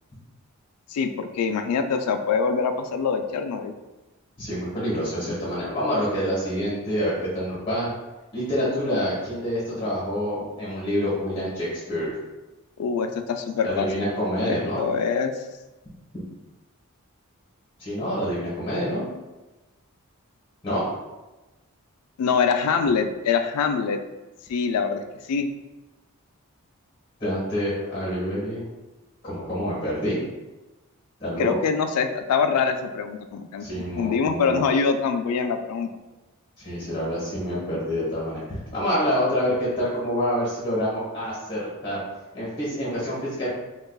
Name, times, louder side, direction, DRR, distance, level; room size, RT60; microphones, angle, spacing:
voice 1, 0.9-3.7 12.8-14.1 14.4-15.3 22.2-24.0 24.5-25.0 25.3-25.5 31.4-33.7 34.0-35.9, left 5 dB, 90° left, 7 dB, 0.4 m, -24 dB
voice 2, 4.4-7.9 8.3-12.2 13.6-14.8 17.8-19.1 20.6-20.8 27.2-28.6 29.2-30.2 31.2-31.6 33.6-34.6 36.6-42.0 42.3-43.5, equal, 25° left, -8 dB, 1.3 m, -27 dB
4.6 x 2.4 x 2.3 m, 1.1 s
head